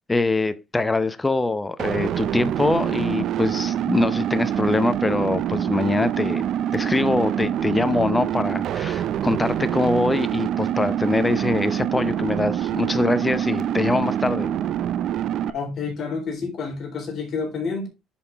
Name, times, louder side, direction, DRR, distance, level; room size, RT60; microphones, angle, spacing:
voice 1, 0.1-6.4 6.7-14.5, left 2 dB, 15° left, 0.7 m, -23 dB
sound 1, 1.8-15.5, right 10 dB, 55° right, 0.5 m, -25 dB
voice 2, 15.5-17.9, left 4 dB, 45° left, 3.8 m, -29 dB
10.0 x 5.8 x 3.4 m
cardioid pair, 135°, 0 cm